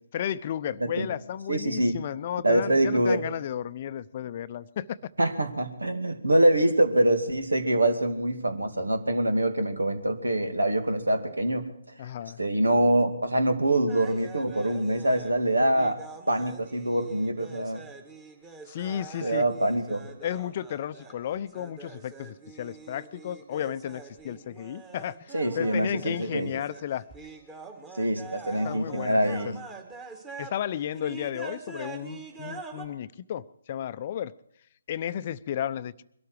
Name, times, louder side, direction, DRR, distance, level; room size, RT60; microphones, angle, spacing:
voice 1, 0.1-5.0 12.0-12.4 18.7-19.5 20.2-27.1 28.6-29.5 30.4-34.3 34.9-36.0, left 10 dB, 40° left, 14 dB, 0.6 m, -33 dB
voice 2, 1.5-2.0 2.4-3.2 5.2-11.7 12.4-17.9 19.2-20.1 25.3-26.5 27.9-29.6, right 1 dB, 85° right, 8 dB, 2.6 m, -25 dB
sound 1, 13.9-30.6 30.9-32.8, right 4 dB, 15° right, 2.0 m, -45 dB
22.5 x 13.0 x 4.8 m, 0.70 s
figure-of-eight pair, 145°, 0 cm